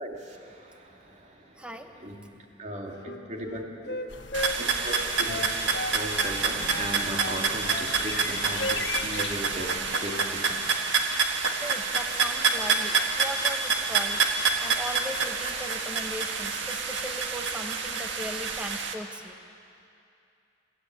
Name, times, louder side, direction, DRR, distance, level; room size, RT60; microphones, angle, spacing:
voice 1, 0.0-1.7 2.0-2.2 2.6-4.0 4.6-10.6, right 1 dB, 40° right, 0 dB, 2.5 m, -37 dB
voice 2, 1.6-1.9 11.6-14.2 14.6-19.3, equal, 5° right, 5 dB, 1.2 m, -38 dB
Wind instrument woodwind instrument, 2.9-6.4 6.7-8.3 8.6-8.8 9.1-9.8 10.0-10.3, left 2 dB, 65° left, 1.3 m, -35 dB
sound 1, 4.1-10.0, left 5 dB, 85° left, 1.1 m, -40 dB
sound 2, 4.3-18.9, right 4 dB, 85° right, 1.6 m, -27 dB
25.5 x 13.5 x 8.7 m, 2.6 s
head